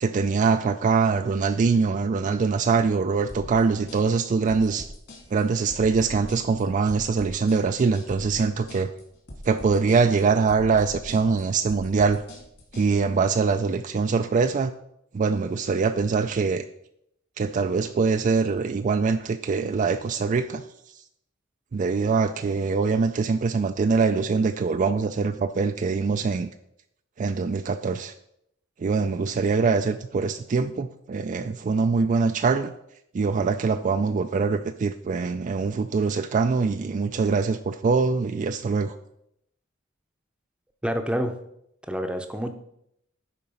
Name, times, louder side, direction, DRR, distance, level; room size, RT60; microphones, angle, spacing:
voice 1, 0.0-4.9 5.3-8.9 9.4-12.2 12.7-14.7 15.1-16.6 17.4-20.6 21.7-26.5 27.2-28.1 28.8-32.7 33.1-39.0, right 4 dB, 40° right, 8 dB, 0.3 m, -23 dB
sound 1, 3.3-12.9, equal, 55° left, 2.5 m, -42 dB
voice 2, 40.8-41.3 41.8-42.6, equal, 5° right, 7 dB, 0.7 m, -27 dB
10.5 x 4.1 x 5.4 m, 0.76 s
head